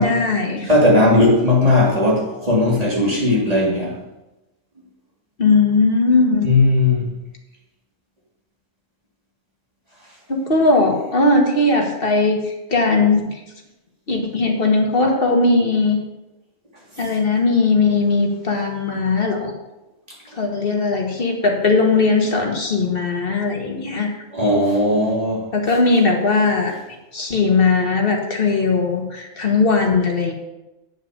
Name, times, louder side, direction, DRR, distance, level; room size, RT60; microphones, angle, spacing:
voice 1, 0.0-0.7 5.4-6.5 10.3-13.4 14.1-16.0 17.0-19.5 20.4-24.1 25.5-26.7 27.1-30.3, left 3 dB, 45° left, 1 dB, 1.9 m, -18 dB
voice 2, 0.7-3.9 6.4-7.1 24.3-25.4, left 2 dB, 30° right, -5 dB, 3.2 m, -17 dB
8.8 x 7.1 x 6.7 m, 1.0 s
omnidirectional pair, 1.3 m